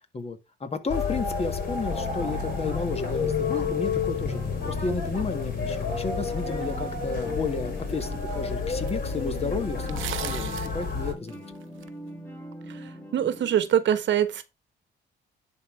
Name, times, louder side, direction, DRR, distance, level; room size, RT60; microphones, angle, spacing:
voice 1, 0.1-11.4, left 4 dB, 30° left, 1.6 m, -32 dB
sound 1, 0.9-11.1, left 5 dB, 50° left, 3.8 m, -30 dB
sound 2, 1.9-13.6, left 1 dB, 10° left, 2.5 m, -43 dB
sound 3, 7.7-7.8 8.9-9.0 9.8-10.8 11.3-11.9, right 14 dB, 85° right, 0.7 m, -36 dB
voice 2, 12.7-14.4, right 10 dB, 65° right, 1.1 m, -24 dB
10.5 x 4.0 x 4.6 m
cardioid pair, 90°, 20 cm